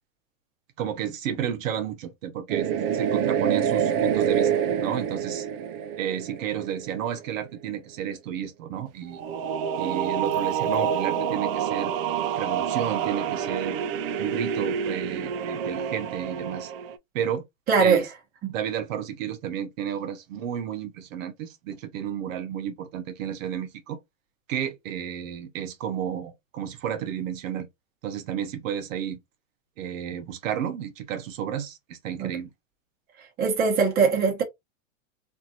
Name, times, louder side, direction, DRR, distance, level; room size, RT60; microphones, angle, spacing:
voice 1, 0.8-4.5 4.8-5.5 5.9-9.2 9.8-11.9 12.3-13.8 14.2-16.7 17.1-17.4 17.8-18.1 18.5-24.0 24.5-27.7 28.0-29.2 29.8-32.5, right 9 dB, 75° right, 0.9 m, -32 dB
sound 1, 2.5-7.1 9.1-17.0, right 8 dB, 50° right, 0.4 m, -27 dB
voice 2, 17.7-18.1 32.2-32.3 33.4-34.4, right 5 dB, 25° right, 1.0 m, -21 dB
2.7 x 2.5 x 2.7 m
supercardioid pair, 150°, 39 cm